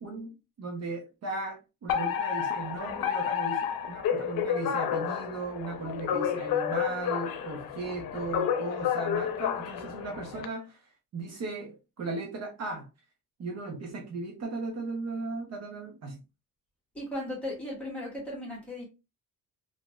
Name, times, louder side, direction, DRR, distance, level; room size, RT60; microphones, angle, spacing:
voice 1, 0.0-12.9 13.4-16.2, right 3 dB, 50° right, 0.7 m, -37 dB
Alarm, 1.9-10.5, left 8 dB, 85° left, 0.6 m, -30 dB
voice 2, 16.9-18.8, left 1 dB, 5° left, 1.4 m, -36 dB
3.0 x 2.6 x 2.2 m
cardioid pair, 140°, 34 cm